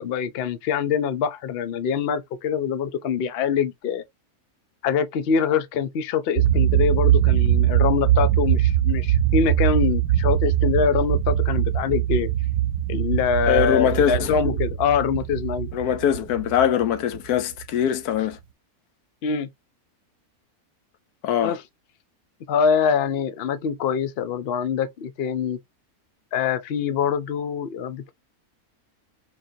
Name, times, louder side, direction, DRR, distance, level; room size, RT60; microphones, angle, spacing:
voice 1, 0.0-4.0 4.8-12.3 12.9-15.7 19.2-19.5 21.4-21.6 22.5-25.6 26.3-28.1, left 7 dB, 60° left, 0.6 m, -24 dB
sound 1, 6.4-17.7, right 12 dB, 80° right, 1.1 m, -22 dB
voice 2, 13.5-14.3 15.7-18.4 21.2-21.6, left 9 dB, 85° left, 1.2 m, -22 dB
3.9 x 3.2 x 2.7 m
omnidirectional pair, 1.6 m